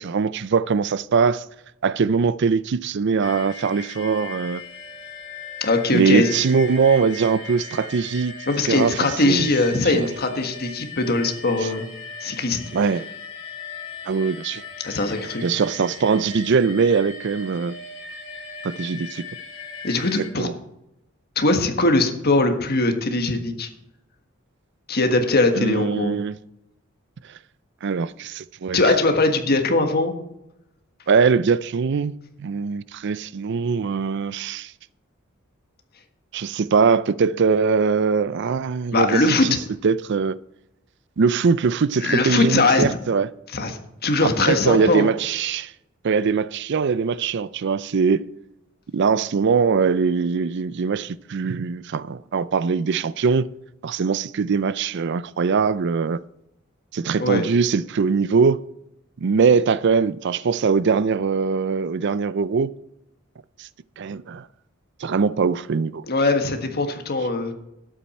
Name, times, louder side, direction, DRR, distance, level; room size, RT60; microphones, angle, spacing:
voice 1, 0.0-1.4 1.8-4.6 5.9-8.4 8.7-9.0 9.2-9.5 9.9-10.1 11.6-11.7 12.7-13.1 14.1-14.6 15.4-17.8 18.6-19.3 20.2-20.5 25.6-26.3 27.8-28.8 31.1-34.7 36.3-39.6 39.8-40.4 41.2-43.3 44.2-45.7 46.0-48.3 48.9-53.5 53.8-56.2 56.9-58.6 59.2-62.7 63.6-63.7 64.0-64.4 65.0-66.0, right 5 dB, 60° right, 0.4 m, -21 dB
sound 1, 3.2-20.3, left 4 dB, 80° left, 5.1 m, -38 dB
voice 2, 5.6-6.3 8.5-11.9 12.2-12.6 14.8-15.4 19.8-20.5 21.3-23.7 24.9-26.2 28.7-30.1 38.9-39.5 42.0-42.8 43.5-45.1 57.2-57.4 66.1-67.5, left 2 dB, 50° left, 1.5 m, -21 dB
12.5 x 8.9 x 4.3 m
head